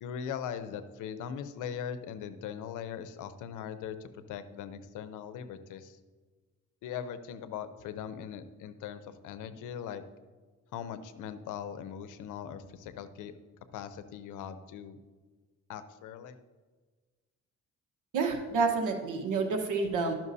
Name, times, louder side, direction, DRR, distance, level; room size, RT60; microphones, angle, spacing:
voice 1, 0.0-6.0 6.8-10.0 10.7-13.3 13.7-15.0 15.7-16.4, left 8 dB, 85° left, 11 dB, 0.6 m, -40 dB
voice 2, 18.1-20.1, right 4 dB, 80° right, 3 dB, 1.2 m, -29 dB
12.0 x 5.8 x 2.7 m, 1.4 s
cardioid pair, 90°, 30 cm